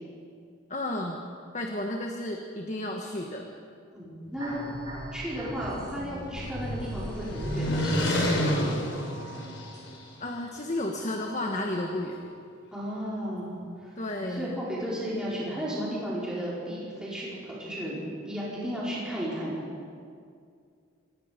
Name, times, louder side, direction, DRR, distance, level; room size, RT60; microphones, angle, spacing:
voice 1, 0.7-1.2 1.5-3.5 10.2-12.2 14.0-14.6, left 1 dB, 35° left, 2 dB, 1.5 m, -32 dB
voice 2, 3.9-4.6 5.1-8.3 12.7-13.5 13.8-14.0 14.4-19.6, equal, 5° right, -8 dB, 4.8 m, -34 dB
sound 1, 4.4-6.0 6.4-10.3 10.7-12.2, equal, 20° right, 6.8 m, -40 dB
sound 2, 5.3-10.1, equal, 70° left, 4.7 m, -30 dB
26.5 x 19.5 x 5.2 m, 2.3 s
head